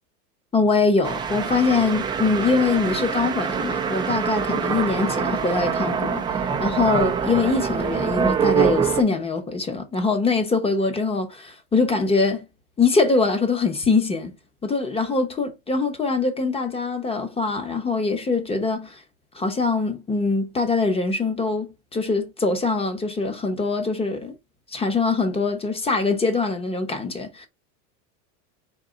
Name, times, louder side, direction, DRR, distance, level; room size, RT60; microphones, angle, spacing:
voice 1, 0.5-6.2 6.6-12.4 12.8-14.3 14.6-19.0 19.3-24.3 24.7-27.5, left 4 dB, 15° left, 0.8 m, -23 dB
sound 1, 1.0-9.0, right 6 dB, 10° right, 0.3 m, -24 dB
3.8 x 2.7 x 3.8 m
supercardioid pair, 115°, 44 cm